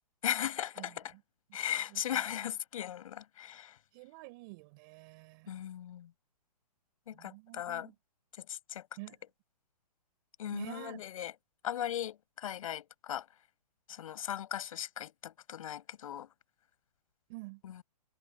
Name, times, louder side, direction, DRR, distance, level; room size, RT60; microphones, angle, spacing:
voice 1, 0.2-1.1 1.5-3.8 5.5-6.1 7.1-7.9 8.4-8.9 10.4-11.3 11.6-13.3 13.9-16.3 17.6-17.8, left 11 dB, 55° left, 7.3 m, -38 dB
voice 2, 1.9-2.2 3.9-5.6 7.1-7.9 9.0-9.2 10.5-11.0 17.3-17.6, right 25 dB, 30° right, 6.8 m, -48 dB
hypercardioid pair, 160°, 21 cm